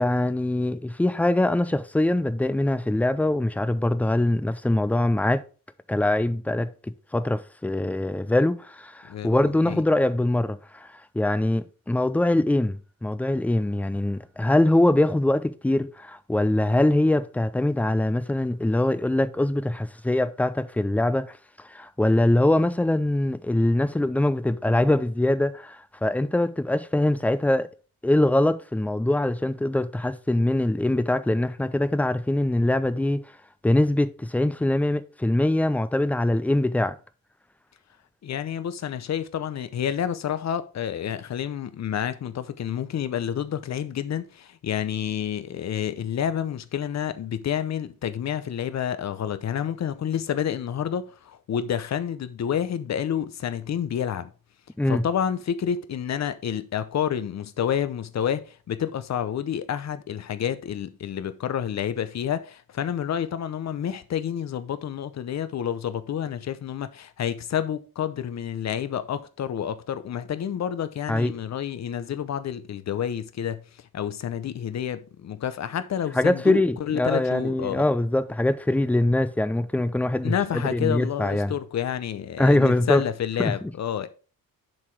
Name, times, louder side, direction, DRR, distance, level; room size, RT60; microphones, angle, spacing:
voice 1, 0.0-5.4 5.9-27.7 28.0-33.2 33.6-37.0 54.8-55.1 71.1-71.3 76.1-81.5 82.4-83.0 83.4-83.7, left 1 dB, 5° left, 0.3 m, -23 dB
voice 2, 9.1-9.8 38.2-54.3 54.9-73.6 73.9-77.8 80.2-84.1, left 9 dB, 50° left, 0.7 m, -29 dB
7.3 x 4.8 x 4.6 m
wide cardioid pair, 155°, 36 cm